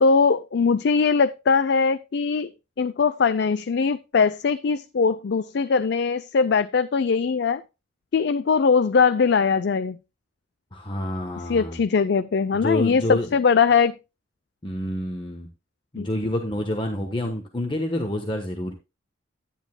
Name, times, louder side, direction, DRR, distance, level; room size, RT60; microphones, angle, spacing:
voice 1, 0.0-2.5 2.8-7.6 8.1-10.0 11.5-13.9 16.0-16.1, left 5 dB, 60° left, 0.4 m, -21 dB
voice 2, 10.7-11.8 12.5-13.3 14.6-15.5 15.9-18.7, left 1 dB, 25° left, 1.1 m, -28 dB
10.5 x 10.0 x 2.2 m
head